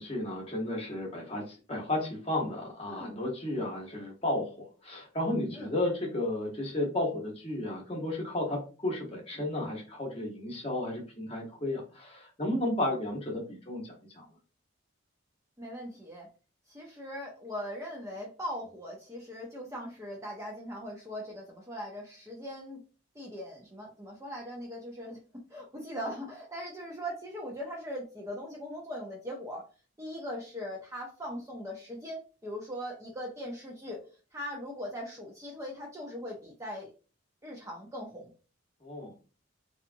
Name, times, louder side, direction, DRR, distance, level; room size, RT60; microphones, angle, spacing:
voice 1, 0.0-4.5 4.8-14.3 38.8-39.1, left 1 dB, 30° left, -1 dB, 0.8 m, -33 dB
voice 2, 2.9-3.2 5.5-5.7 15.6-16.3 16.7-22.8 23.2-29.6 30.0-34.0 34.3-36.9 37.4-38.3, equal, 15° right, -1 dB, 0.4 m, -40 dB
2.8 x 2.3 x 2.5 m, 0.35 s
head